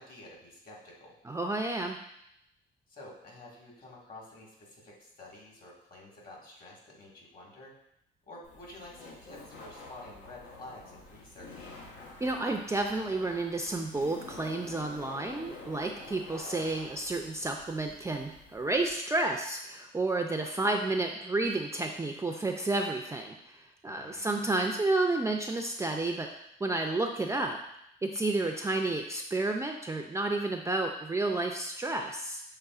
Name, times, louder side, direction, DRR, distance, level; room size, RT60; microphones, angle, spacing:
voice 1, 0.0-1.2 2.9-7.7 8.3-11.7 23.9-24.2, left 2 dB, 50° left, -3 dB, 1.7 m, -50 dB
voice 2, 1.2-2.0 12.2-26.3 26.6-27.6 28.0-32.4, right 2 dB, 15° right, 3 dB, 0.4 m, -31 dB
Laughter, 8.4-18.9, left 3 dB, 90° left, 0.9 m, -48 dB
6.6 x 3.3 x 2.4 m, 0.78 s
cardioid pair, 90°, 20 cm